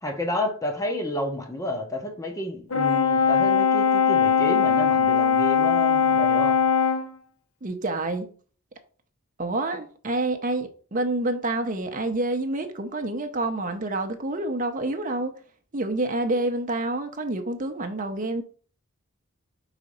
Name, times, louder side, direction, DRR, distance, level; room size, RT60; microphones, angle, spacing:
voice 1, 0.0-6.6, left 1 dB, 15° left, 0.9 m, -30 dB
Brass instrument, 2.7-7.1, left 6 dB, 80° left, 1.2 m, -20 dB
voice 2, 7.6-8.3 9.4-15.3 15.7-18.4, right 2 dB, 40° right, 0.7 m, -28 dB
4.9 x 4.0 x 5.4 m
head